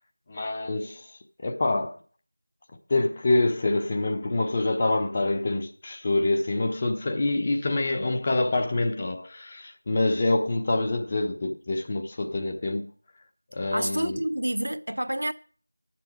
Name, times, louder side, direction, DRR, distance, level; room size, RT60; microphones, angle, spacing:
voice 1, 0.3-1.1 1.4-2.0 2.9-12.9 13.5-14.2, left 2 dB, 20° left, 0.6 m, -26 dB
voice 2, 13.7-15.3, right 1 dB, 65° right, 0.6 m, -28 dB
9.3 x 6.8 x 6.2 m
figure-of-eight pair, 175°, 0 cm